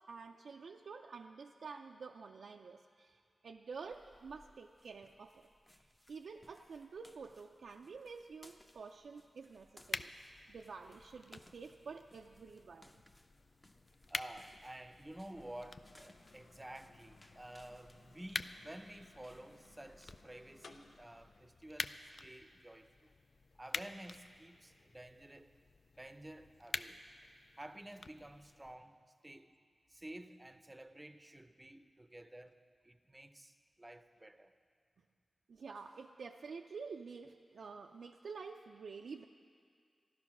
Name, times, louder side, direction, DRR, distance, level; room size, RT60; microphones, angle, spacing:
voice 1, 0.0-5.5 6.1-10.1 10.5-13.0 35.5-39.3, right 5 dB, 85° right, 0.4 m, -49 dB
sound 1, 3.7-20.2, left 1 dB, 20° left, 0.7 m, -66 dB
sound 2, 9.8-28.8, left 3 dB, 55° left, 0.4 m, -49 dB
voice 2, 14.1-23.1 23.5-25.6 25.9-27.0 27.5-29.6 29.9-34.5, right 1 dB, 15° right, 0.6 m, -52 dB
sound 3, 15.3-21.5, left 3 dB, 75° left, 0.7 m, -62 dB
14.5 x 11.5 x 6.0 m
wide cardioid pair, 80°, 0 cm